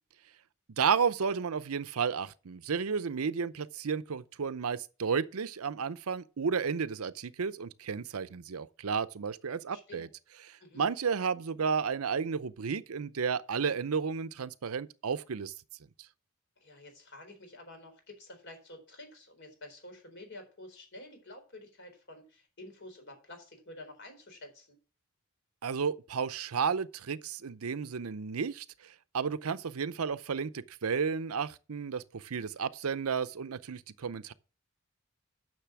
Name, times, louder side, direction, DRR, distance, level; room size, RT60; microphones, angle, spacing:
voice 1, 0.8-10.1 10.5-15.5 25.6-34.3, right 6 dB, 85° right, 0.6 m, -32 dB
voice 2, 9.5-10.1 10.6-10.9 16.6-24.8, left 1 dB, 55° left, 4.2 m, -50 dB
10.0 x 6.5 x 6.0 m
head